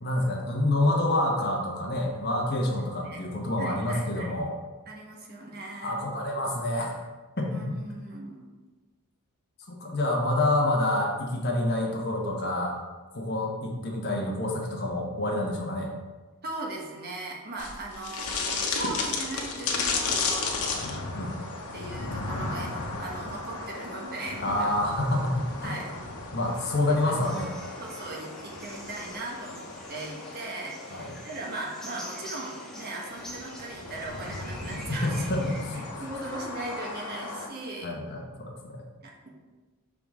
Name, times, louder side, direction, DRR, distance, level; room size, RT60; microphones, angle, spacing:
voice 1, 0.0-4.5 5.8-7.0 7.4-7.8 9.7-12.8 13.1-15.9 21.1-21.4 24.4-25.8 26.3-27.5 30.9-31.1 34.9-35.8 37.8-38.8, left 1 dB, 50° left, 0 dB, 1.1 m, -27 dB
voice 2, 3.6-4.4 4.9-6.0 7.5-8.5 16.4-20.5 21.7-24.7 25.6-25.9 26.9-27.1 27.8-35.3 35.7-37.9 39.0-39.5, right 2 dB, 45° right, -1 dB, 1.2 m, -38 dB
sound 1, 17.6-37.5, left 3 dB, 90° left, 1.0 m, -35 dB
sound 2, 27.2-35.7, equal, ahead, 0.9 m, -46 dB
6.2 x 4.9 x 3.6 m, 1.2 s
head